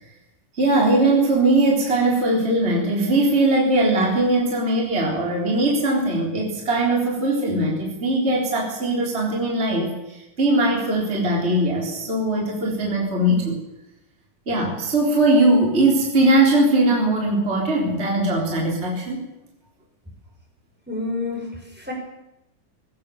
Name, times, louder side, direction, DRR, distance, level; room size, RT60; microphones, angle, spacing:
voice 1, 0.5-13.6 14.5-19.3, right 2 dB, 20° right, -2 dB, 3.9 m, -20 dB
voice 2, 20.9-21.9, left 3 dB, 5° right, 0 dB, 5.5 m, -29 dB
21.5 x 17.5 x 7.1 m, 0.91 s
omnidirectional pair, 3.7 m